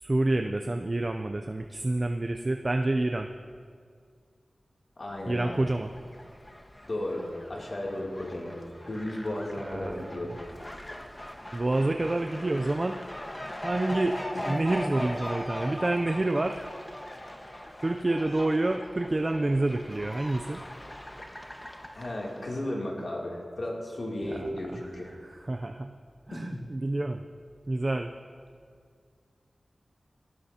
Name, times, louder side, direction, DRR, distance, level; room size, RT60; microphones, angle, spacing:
voice 1, 0.0-3.3 5.3-5.9 9.6-10.2 11.5-13.0 13.6-14.2 14.4-16.7 17.8-20.6 24.2-25.9 26.3-27.2 27.7-28.1, right 2 dB, 35° right, 5 dB, 0.5 m, -28 dB
voice 2, 5.0-5.7 6.8-8.6 8.9-10.4 14.3-14.4 21.9-25.2 26.3-26.6, left 1 dB, 55° left, -3 dB, 2.9 m, -34 dB
Fowl, 5.3-22.6, left 1 dB, 20° left, 1.4 m, -40 dB
17.5 x 17.5 x 2.9 m, 2.1 s
wide cardioid pair, 60°, 0 cm